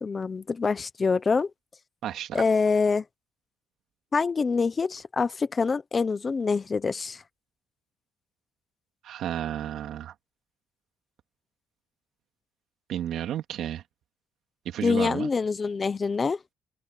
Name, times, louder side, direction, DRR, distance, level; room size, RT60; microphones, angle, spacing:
voice 1, 0.0-1.5 2.3-3.0 4.1-7.2 14.8-16.4, left 4 dB, 25° left, 0.8 m, -25 dB
voice 2, 2.0-2.4 9.0-10.1 12.9-13.8 14.6-15.3, right 11 dB, 60° right, 2.9 m, -32 dB
cardioid pair, 130°, 0 cm